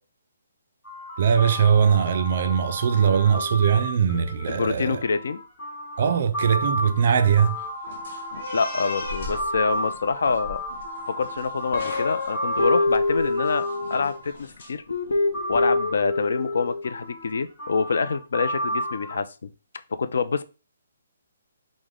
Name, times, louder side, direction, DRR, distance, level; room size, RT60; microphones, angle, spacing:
sound 1, 0.8-14.7 15.3-19.2, equal, 15° left, 1.3 m, -33 dB
voice 1, 1.2-5.0 6.0-7.6, right 7 dB, 40° right, 0.4 m, -21 dB
voice 2, 4.5-5.4 8.5-10.6 11.2-14.8 15.5-19.5 19.9-20.4, left 5 dB, 60° left, 0.4 m, -26 dB
sound 2, 7.4-14.7, left 2 dB, 40° left, 1.0 m, -39 dB
Guitar, 11.7-14.2 14.9-16.8, left 2 dB, 85° left, 0.7 m, -25 dB
4.9 x 2.1 x 3.6 m
hypercardioid pair, 175°, 0 cm